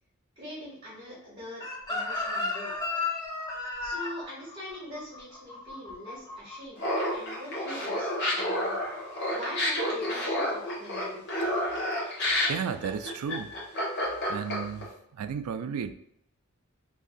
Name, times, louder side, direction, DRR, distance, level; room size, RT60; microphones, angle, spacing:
voice 1, 0.3-2.7 3.8-6.8 7.1-8.7 9.3-11.2, left 1 dB, 30° right, -8 dB, 1.4 m, -42 dB
Chicken rooster, 1.6-6.6 6.8-7.2, left 3 dB, 20° left, 0.6 m, -33 dB
Laughter, 6.8-14.8, left 1 dB, 50° left, 1.1 m, -29 dB
voice 2, 12.5-13.5 14.3-15.9, right 7 dB, 85° right, 11 dB, 0.3 m, -33 dB
2.9 x 2.6 x 3.8 m, 0.77 s
head